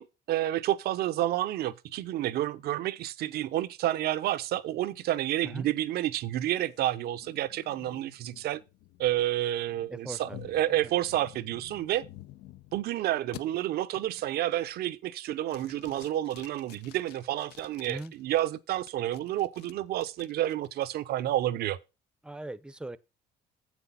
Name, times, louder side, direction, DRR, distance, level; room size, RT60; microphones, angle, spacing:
voice 1, 0.0-8.6 9.0-12.0 12.7-21.8, right 13 dB, 70° right, 0.6 m, -30 dB
sound 1, 6.5-12.8 13.3-13.4 13.9-14.3 14.7-15.1 15.5-18.4 18.9-20.9, left 13 dB, 80° left, 0.6 m, -51 dB
voice 2, 9.9-10.9 17.9-18.1 22.2-23.0, right 1 dB, 5° right, 0.6 m, -40 dB
7.6 x 6.1 x 5.5 m
cardioid pair, 110°, 17 cm